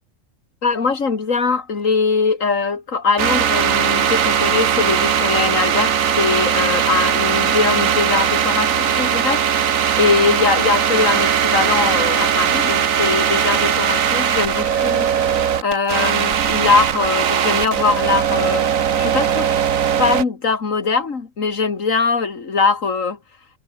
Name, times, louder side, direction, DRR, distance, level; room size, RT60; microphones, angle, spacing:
voice 1, 0.6-15.3 15.6-18.7 19.0-19.5 20.0-23.2, left 4 dB, 75° left, 2.6 m, -21 dB
sound 1, 3.2-20.2, right 8 dB, 85° right, 1.5 m, -19 dB
omnidirectional pair, 1.4 m